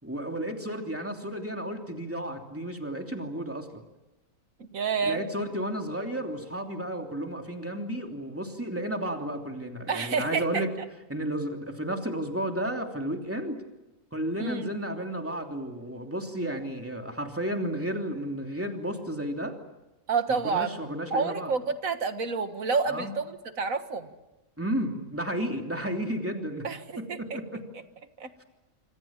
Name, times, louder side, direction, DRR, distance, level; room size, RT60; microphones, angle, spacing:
voice 1, 0.0-3.8 5.1-10.7 11.1-13.6 14.1-19.5 20.3-21.5 22.9-23.1 24.6-26.7 27.0-27.6, right 1 dB, 10° right, 3 dB, 3.0 m, -32 dB
voice 2, 4.6-5.2 9.9-10.6 14.4-14.7 20.1-20.7 21.1-24.1 26.6-27.2 28.2-28.4, right 5 dB, 80° right, 9 dB, 2.0 m, -29 dB
26.0 x 25.0 x 7.4 m, 1.0 s
omnidirectional pair, 1.4 m